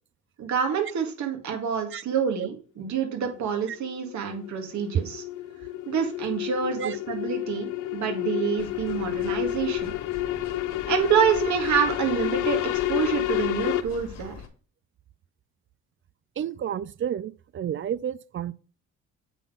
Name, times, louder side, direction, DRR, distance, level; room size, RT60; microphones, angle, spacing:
voice 1, 0.4-5.2 5.9-9.9 10.9-12.6 12.9-14.4, right 7 dB, 70° right, 1.8 m, -27 dB
sound 1, 3.3-13.8, left 15 dB, 85° left, 0.7 m, -30 dB
sound 2, 8.6-14.5, left 6 dB, 60° left, 1.6 m, -43 dB
voice 2, 16.4-18.5, right 9 dB, 45° right, 0.4 m, -31 dB
8.2 x 3.8 x 5.6 m
cardioid pair, 90°, 30 cm